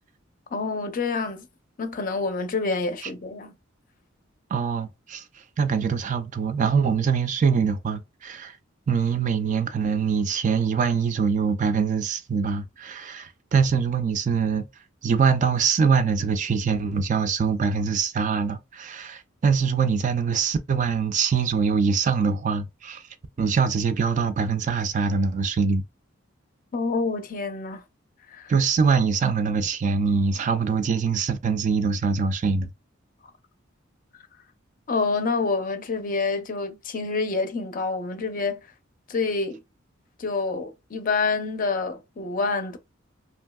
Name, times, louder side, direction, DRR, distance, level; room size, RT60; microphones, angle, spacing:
voice 1, 0.5-1.5 1.8-3.5 26.7-27.8 28.3-28.5 34.9-38.6 39.1-39.6 40.2-42.8, left 4 dB, 45° left, 0.5 m, -27 dB
voice 2, 4.5-5.2 5.6-8.6 8.9-14.7 15.0-23.0 23.4-25.8 28.5-32.7, right 5 dB, 40° right, 0.3 m, -23 dB
2.9 x 2.6 x 2.2 m
head